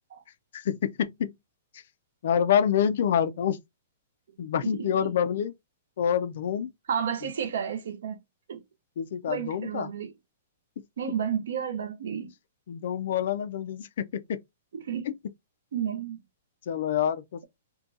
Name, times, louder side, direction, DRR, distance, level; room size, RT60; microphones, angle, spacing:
voice 1, 0.5-1.3 1.7-1.8 2.2-3.6 4.4-5.5 6.0-6.7 9.0-9.9 10.8-10.9 12.7-14.4 16.7-17.4, left 8 dB, 45° left, 0.4 m, -27 dB
voice 2, 4.7-5.1 6.9-8.2 8.5-8.6 9.3-10.1 11.0-12.3 14.7-15.1 15.7-16.2, right 8 dB, 60° right, 0.7 m, -31 dB
3.6 x 2.3 x 2.6 m
hypercardioid pair, 180°, 0 cm